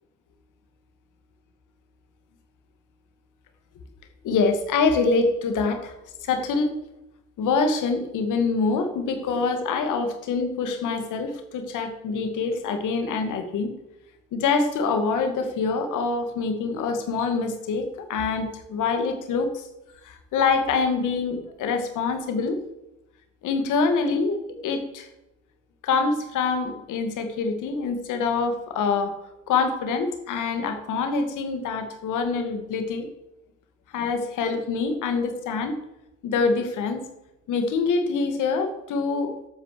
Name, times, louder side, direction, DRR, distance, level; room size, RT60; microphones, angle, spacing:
voice 1, 4.2-5.9 6.2-6.8 7.4-13.7 14.3-19.7 20.0-22.6 23.4-25.1 25.8-29.1 29.5-33.1 33.9-35.8 36.2-37.0 37.5-39.3, left 4 dB, 85° left, 7 dB, 2.2 m, -25 dB
12.0 x 8.9 x 6.8 m, 0.92 s
cardioid pair, 90°, 30 cm